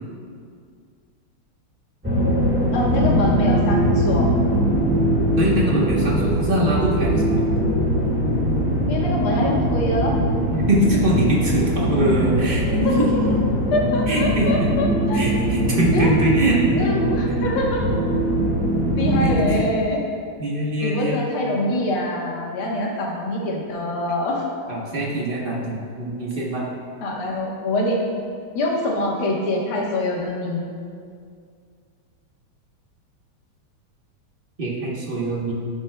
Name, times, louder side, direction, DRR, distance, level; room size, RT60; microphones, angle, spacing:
sound 1, 2.0-19.5, equal, 5° right, 1.3 m, -21 dB
voice 1, 2.7-4.3 8.9-10.2 12.8-13.1 13.7-15.2 15.9-16.1 16.6-17.9 19.0-20.0 20.8-24.4 27.0-28.0 28.6-30.6, left 1 dB, 90° left, -2 dB, 2.0 m, -24 dB
voice 2, 5.4-7.4 10.5-13.1 14.1-14.5 15.1-16.8 19.2-19.6 20.4-21.2 24.7-26.7 34.6-35.5, right 2 dB, 40° right, -4 dB, 0.8 m, -23 dB
11.5 x 6.9 x 2.2 m, 2.2 s
omnidirectional pair, 2.3 m